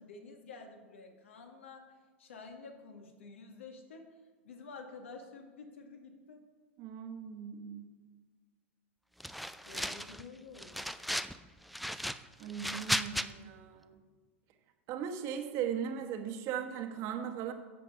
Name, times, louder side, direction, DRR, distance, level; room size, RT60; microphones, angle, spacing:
voice 1, 0.0-1.9 2.2-4.1 4.4-6.4 9.7-10.9, left 4 dB, 70° left, 4 dB, 1.8 m, -50 dB
voice 2, 6.8-7.9 12.4-14.0 14.9-17.5, right 8 dB, 45° right, 5 dB, 1.3 m, -38 dB
sound 1, 9.2-10.2 10.6-11.4 11.7-13.3, equal, ahead, 0.4 m, -35 dB
11.5 x 7.5 x 5.5 m, 1.5 s
figure-of-eight pair, 90°, 7 cm